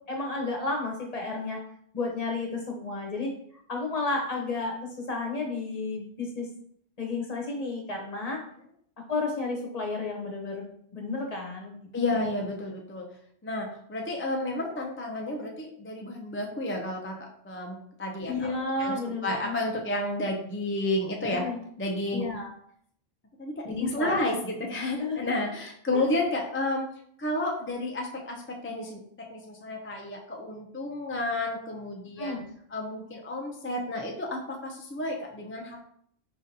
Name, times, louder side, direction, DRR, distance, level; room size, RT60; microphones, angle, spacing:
voice 1, 0.1-1.6 1.9-3.3 3.7-6.5 7.0-8.4 9.1-12.2 18.3-19.6 21.3-21.6 22.1-22.5 23.6-24.2 25.0-25.3 25.9-26.1 32.2-32.4, left 3 dB, 40° left, 0 dB, 1.0 m, -32 dB
voice 2, 11.9-13.1 13.4-21.5 21.8-22.3 23.4-26.9 27.2-32.4 32.7-35.8, left 1 dB, 20° left, 0 dB, 0.3 m, -31 dB
5.2 x 3.7 x 2.8 m, 0.66 s
omnidirectional pair, 1.1 m